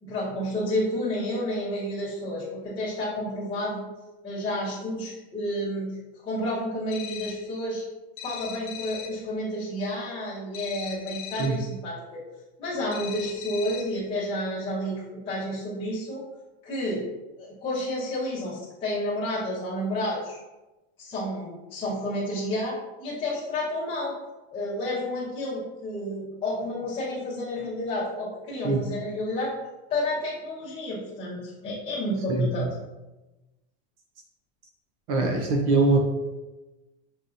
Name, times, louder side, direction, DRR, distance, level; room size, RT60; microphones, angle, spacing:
voice 1, 0.0-3.9 4.2-7.8 8.2-12.2 12.6-16.2 16.6-17.0 17.4-20.4 21.0-24.1 24.5-29.5 29.9-32.7, left 1 dB, 15° left, -9 dB, 0.9 m, -30 dB
sound 1, 6.9-7.5 8.2-9.3 10.5-11.7 12.9-14.0, left 8 dB, 45° left, 0.5 m, -39 dB
voice 2, 35.1-36.0, right 3 dB, 35° right, 1 dB, 0.4 m, -22 dB
5.4 x 2.7 x 2.5 m, 1.1 s
supercardioid pair, 165°, 33 cm